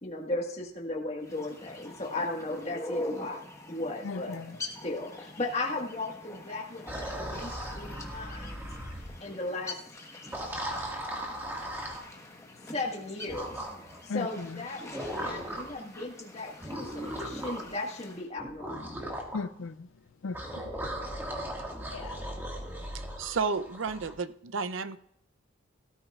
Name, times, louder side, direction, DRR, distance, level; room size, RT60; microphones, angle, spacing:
voice 1, 0.0-3.4 3.7-4.4 4.8-8.6 9.2-9.7 12.7-13.7 14.0-14.8 15.1-18.9, left 2 dB, 30° left, 1.6 m, -36 dB
sound 1, 1.2-18.3, left 2 dB, 15° left, 1.2 m, -45 dB
voice 2, 4.0-4.6 14.1-14.6 19.3-19.9 20.2-20.7 21.9-22.2, left 4 dB, 70° left, 0.4 m, -37 dB
sound 2, 6.9-9.1 10.2-12.1 13.3-14.0 14.9-15.8 16.6-17.7 18.4-19.4 20.3-24.1, right 1 dB, 10° right, 1.8 m, -37 dB
voice 3, 23.2-25.0, right 4 dB, 70° right, 0.6 m, -32 dB
18.0 x 13.0 x 2.4 m
head